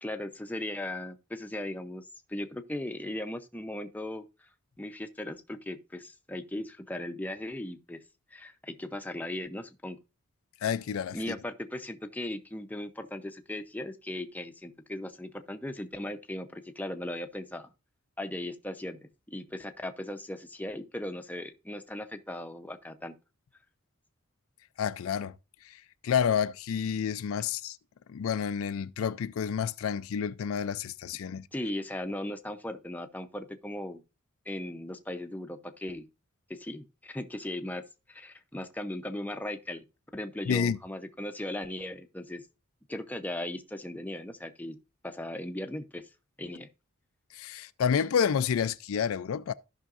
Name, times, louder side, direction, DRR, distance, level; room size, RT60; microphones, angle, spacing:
voice 1, 0.0-4.2 4.8-8.0 8.3-10.0 11.1-17.7 18.2-19.0 19.3-23.1 31.5-34.0 34.5-36.1 36.5-37.8 38.1-39.8 40.1-42.4 42.9-44.8 45.0-46.0 46.4-46.7, left 1 dB, 10° left, 0.6 m, -37 dB
voice 2, 10.6-11.3 24.8-25.3 25.6-27.8 28.1-31.5 40.5-40.8 47.3-49.5, left 7 dB, 75° left, 0.4 m, -29 dB
15.0 x 5.6 x 2.5 m
head